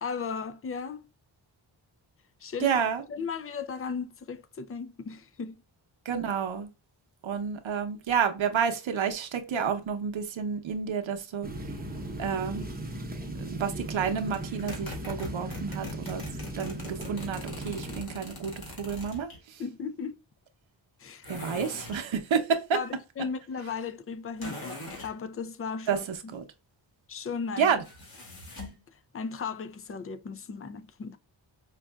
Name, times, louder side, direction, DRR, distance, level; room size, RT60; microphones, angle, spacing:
voice 1, 0.0-1.1 2.4-2.8 3.1-5.5 19.6-20.1 21.0-21.7 22.7-26.3 27.1-27.7 29.1-31.2, left 5 dB, 30° left, 0.4 m, -36 dB
voice 2, 2.6-3.0 6.1-6.7 7.2-11.5 12.2-12.7 13.3-16.2 16.6-18.5 18.8-19.3 21.3-22.8 25.9-26.0 26.3-26.4 27.6-27.8, right 7 dB, 80° right, 0.8 m, -29 dB
sound 1, 11.4-18.0, right 1 dB, 20° right, 0.8 m, -38 dB
sound 2, 14.3-19.4 21.2-22.1 24.4-25.1 27.8-28.8, left 1 dB, 50° left, 1.8 m, -41 dB
5.2 x 2.4 x 2.3 m
wide cardioid pair, 95°, 46 cm